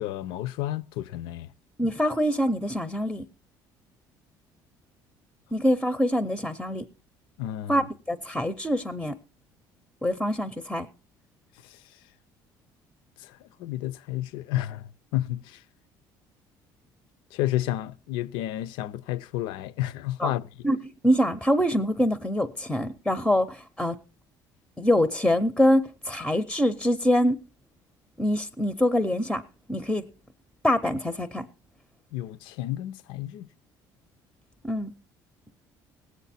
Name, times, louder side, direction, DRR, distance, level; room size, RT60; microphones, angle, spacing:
voice 1, 0.0-1.5 7.4-7.9 13.2-13.3 13.6-15.6 17.3-20.7 32.1-33.5, left 14 dB, 90° left, 0.6 m, -31 dB
voice 2, 1.8-3.2 5.5-6.9 7.7-9.2 10.0-10.9 20.2-20.3 20.6-24.0 24.8-27.4 28.2-29.4 29.7-30.1 30.6-31.5 34.6-34.9, equal, 5° left, 0.6 m, -24 dB
18.5 x 8.2 x 4.2 m
cardioid pair, 155°, 8 cm